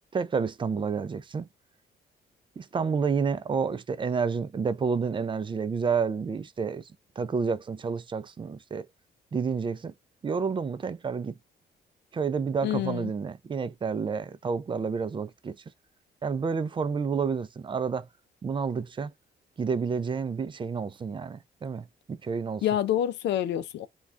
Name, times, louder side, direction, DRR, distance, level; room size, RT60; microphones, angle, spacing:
voice 1, 0.1-1.5 2.6-6.8 7.2-8.9 9.3-9.9 10.2-11.3 12.1-15.5 16.2-18.1 18.4-19.1 19.6-22.6, right 5 dB, 30° right, 0.4 m, -29 dB
voice 2, 12.6-13.1 22.6-23.9, left 11 dB, 80° left, 0.4 m, -27 dB
2.4 x 2.3 x 3.2 m
cardioid pair, 95°, 18 cm